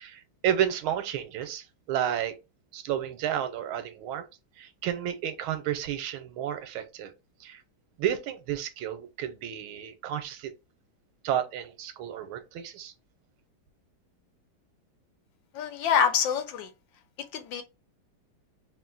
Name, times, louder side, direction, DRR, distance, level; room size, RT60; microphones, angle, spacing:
voice 1, 0.0-2.4 2.7-4.3 4.6-7.1 7.4-7.6 8.0-10.5 11.2-12.9, right 10 dB, 85° right, 1.5 m, -31 dB
voice 2, 15.5-16.7 17.3-17.6, left 7 dB, 75° left, 1.2 m, -26 dB
3.7 x 2.5 x 3.8 m
omnidirectional pair, 2.3 m